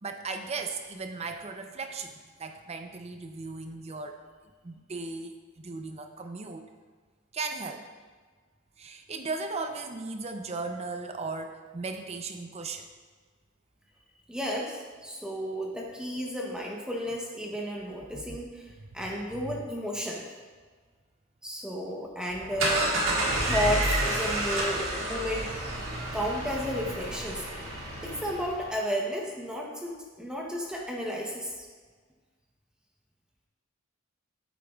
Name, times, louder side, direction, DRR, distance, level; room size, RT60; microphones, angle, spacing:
voice 1, 0.0-4.2 4.6-6.6 7.3-7.9 8.8-12.9 18.1-18.4 18.8-19.0 19.3-19.7, right 3 dB, 30° right, 6 dB, 0.6 m, -37 dB
voice 2, 14.3-20.2 21.4-23.0 23.4-25.5 26.1-27.4 28.0-31.7, equal, 5° right, -2 dB, 0.8 m, -33 dB
sound 1, 22.3-28.7, right 1 dB, 75° right, 1.7 m, -30 dB
9.0 x 8.2 x 2.4 m, 1.5 s
head